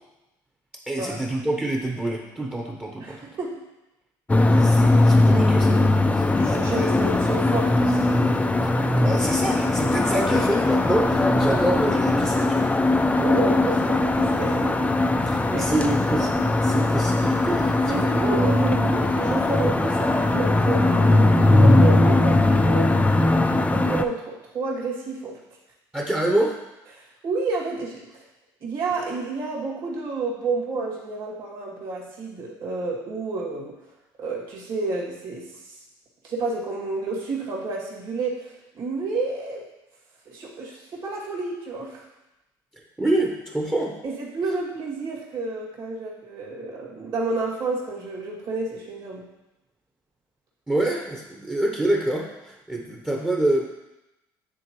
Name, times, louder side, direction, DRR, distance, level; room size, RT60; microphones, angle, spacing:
voice 1, 0.9-3.2 4.4-5.8 6.1-7.0 8.6-12.7 15.3-16.3 16.6-18.2 25.9-26.6 43.0-43.9 50.7-53.6, right 1 dB, 10° right, -1 dB, 0.9 m, -26 dB
voice 2, 3.0-3.6 6.4-8.1 13.2-14.9 15.2-15.7 17.9-25.4 26.9-28.2 28.6-33.7 34.2-35.7 36.2-39.7 40.3-42.0 44.0-49.3, right 3 dB, 55° right, -4 dB, 2.4 m, -30 dB
sound 1, 4.3-24.0, left 2 dB, 15° left, 0.5 m, -20 dB
9.8 x 3.6 x 3.1 m, 0.98 s
supercardioid pair, 75°, 10 cm